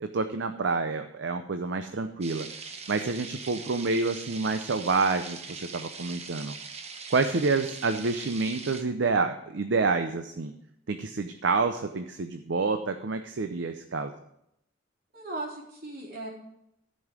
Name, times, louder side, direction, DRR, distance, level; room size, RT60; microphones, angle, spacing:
voice 1, 0.0-2.5 2.9-6.5 7.1-10.5 10.9-14.1, right 4 dB, 65° right, 7 dB, 0.6 m, -28 dB
sound 1, 2.2-8.8, right 5 dB, 35° right, 0.8 m, -42 dB
voice 2, 15.1-16.3, right 2 dB, 50° right, -2 dB, 3.2 m, -37 dB
13.0 x 5.4 x 6.1 m, 0.79 s
head